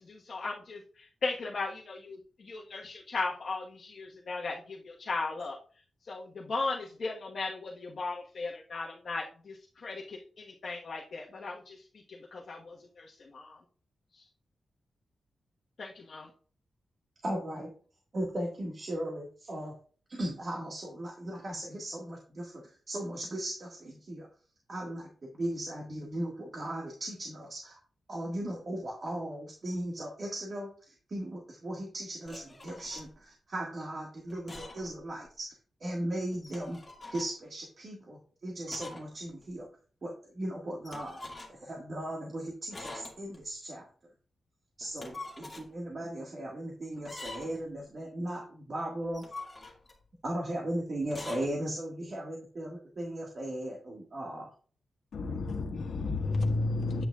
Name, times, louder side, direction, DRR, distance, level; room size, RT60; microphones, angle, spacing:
voice 1, 0.0-5.6 6.0-11.8 12.1-13.6 14.1-14.2 15.8-16.3, left 3 dB, 50° left, 1.3 m, -37 dB
voice 2, 17.2-17.7 18.1-19.7 20.1-24.3 24.7-27.8 28.1-35.5 35.8-36.8 37.1-39.7 40.0-41.2 41.5-43.9 44.8-49.2 50.2-54.5, right 1 dB, 40° right, 1.7 m, -37 dB
sound 1, 32.2-33.1 34.3-35.0 35.3-35.4 36.3-37.3 38.7-39.1 39.4-39.5 40.8-41.7 42.7-43.4 44.8-45.7 47.0-47.7 49.0-50.0 51.0-51.5, left 2 dB, 15° left, 2.1 m, -45 dB
voice 3, 55.1-57.0, left 3 dB, 85° left, 1.4 m, -30 dB
8.9 x 8.7 x 2.4 m
wide cardioid pair, 160°, 0 cm